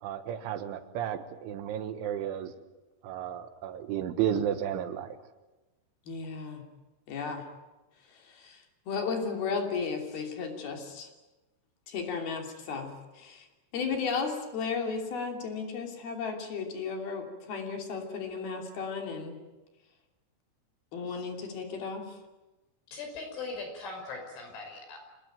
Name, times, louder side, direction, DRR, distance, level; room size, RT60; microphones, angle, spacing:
voice 1, 0.0-2.5 3.0-5.2, right 10 dB, 80° right, 9 dB, 3.7 m, -33 dB
voice 2, 6.1-6.6 7.1-7.4 8.2-11.1 11.9-12.9 13.1-13.5 13.7-19.4 20.9-22.1, left 5 dB, 55° left, 3 dB, 4.6 m, -34 dB
voice 3, 22.9-25.0, left 3 dB, 80° left, 3 dB, 8.1 m, -40 dB
27.5 x 19.0 x 9.1 m, 1.1 s
omnidirectional pair, 5.5 m